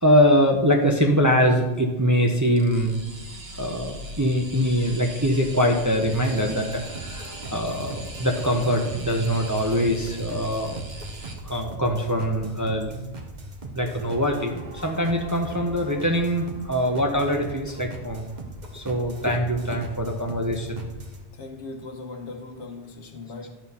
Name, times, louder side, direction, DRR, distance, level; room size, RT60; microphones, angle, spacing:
voice 1, 0.0-2.9 3.6-10.8 11.4-12.9 13.7-18.3 18.7-20.8, equal, 20° right, 0.7 m, -23 dB
sound 1, 2.5-11.3, right 2 dB, 60° right, 1.4 m, -39 dB
sound 2, 6.0-21.2, right 2 dB, 40° right, 1.0 m, -39 dB
voice 2, 21.3-23.5, left 3 dB, 70° left, 1.2 m, -38 dB
11.0 x 4.5 x 5.4 m
omnidirectional pair, 1.2 m